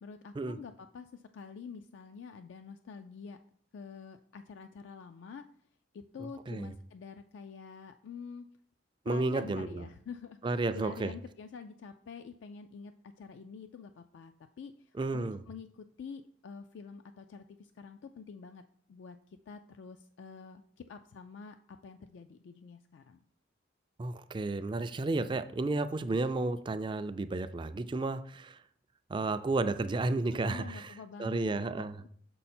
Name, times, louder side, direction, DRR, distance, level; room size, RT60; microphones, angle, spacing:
voice 1, 0.0-3.4 3.7-5.5 5.9-8.5 9.1-18.6 18.9-23.2 30.3-31.8, left 5 dB, 70° left, 0.3 m, -47 dB
voice 2, 6.2-6.7 9.1-9.9 10.4-11.1 14.9-15.4 24.0-28.6 29.1-30.9 31.2-32.0, right 2 dB, 25° right, 0.3 m, -32 dB
6.4 x 5.4 x 4.3 m
head